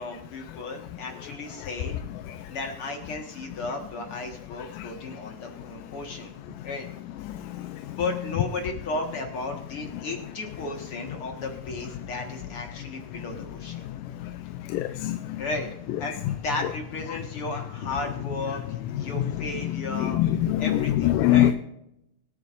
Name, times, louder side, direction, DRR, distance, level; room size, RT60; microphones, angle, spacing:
voice 1, 0.0-2.0 2.5-6.3 6.6-6.9 7.9-13.9 15.4-15.7 16.0-20.2 20.6-21.5, left 2 dB, 50° left, 2 dB, 2.0 m, -34 dB
voice 2, 14.7-15.2 16.3-16.4 19.9-21.5, left 13 dB, 85° left, 9 dB, 2.2 m, -22 dB
24.5 x 9.4 x 2.5 m, 0.82 s
omnidirectional pair, 3.7 m